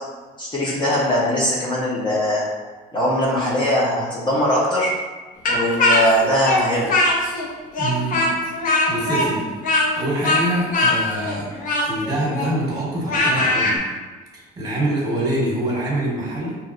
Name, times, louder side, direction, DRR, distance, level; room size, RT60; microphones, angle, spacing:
voice 1, 0.4-2.4 2.9-4.9 5.5-6.9, equal, 25° left, -6 dB, 0.9 m, -20 dB
Speech, 5.4-7.5 7.7-13.8, left 2 dB, 55° left, 0.8 m, -20 dB
voice 2, 7.8-8.3 8.9-9.5 10.0-11.5 11.8-13.8 14.3-16.6, right 1 dB, 20° right, -5 dB, 1.4 m, -25 dB
4.4 x 3.2 x 2.6 m, 1.3 s
cardioid pair, 110°, 17 cm